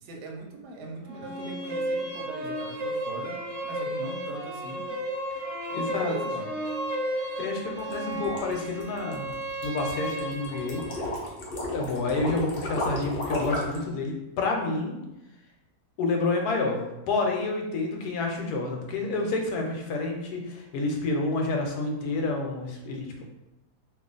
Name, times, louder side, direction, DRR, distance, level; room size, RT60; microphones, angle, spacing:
voice 1, 0.0-3.4 3.6-4.9 5.7-6.5, right 2 dB, 90° right, 2 dB, 1.2 m, -40 dB
sound 1, 1.1-11.0, right 1 dB, 55° right, 0.9 m, -33 dB
voice 2, 5.7-6.2 7.4-11.2 11.7-15.0 16.0-16.8 17.1-23.2, left 3 dB, 80° left, 1 dB, 1.1 m, -29 dB
sound 2, 7.8-13.8, left 1 dB, 50° left, 0.7 m, -33 dB
2.7 x 2.4 x 3.8 m, 0.95 s
omnidirectional pair, 1.7 m